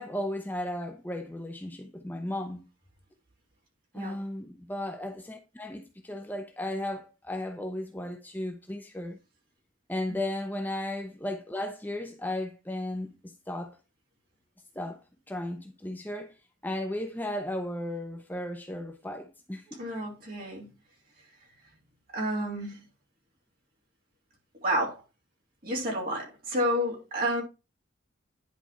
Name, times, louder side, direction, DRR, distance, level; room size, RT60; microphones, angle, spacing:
voice 1, 0.0-2.6 3.9-9.2 9.9-13.8 14.7-15.0 15.3-16.4 16.6-19.8, left 1 dB, 10° left, 0.6 m, -35 dB
voice 2, 19.8-20.7 22.1-22.8 24.6-25.0 25.6-27.4, equal, 45° right, 3.3 m, -30 dB
10.5 x 4.1 x 4.4 m
head